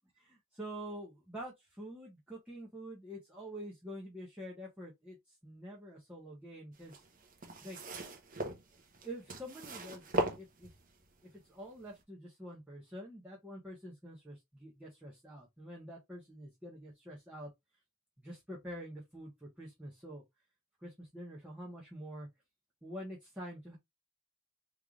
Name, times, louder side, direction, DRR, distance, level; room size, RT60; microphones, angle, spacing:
voice 1, 0.2-7.0 7.6-7.8 8.7-10.7 11.5-17.5 18.2-20.2 20.8-22.3 22.8-23.8, equal, 5° right, 1.4 m, -47 dB
sound 1, 6.8-11.0 11.8-11.9, right 2 dB, 35° right, 1.1 m, -38 dB
4.6 x 3.5 x 2.5 m
head